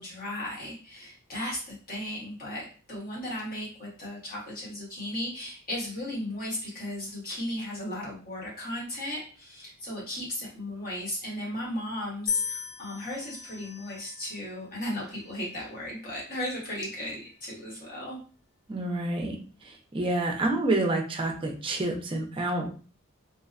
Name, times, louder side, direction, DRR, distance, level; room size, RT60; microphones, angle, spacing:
voice 1, 0.0-18.2, left 1 dB, 40° left, -5 dB, 1.2 m, -36 dB
sound 1, 12.3-14.5 15.3-15.8, left 5 dB, 80° left, 0.5 m, -35 dB
voice 2, 18.7-19.4 19.6-22.7, right 2 dB, 25° right, 2 dB, 0.4 m, -28 dB
2.6 x 2.1 x 2.4 m, 0.39 s
head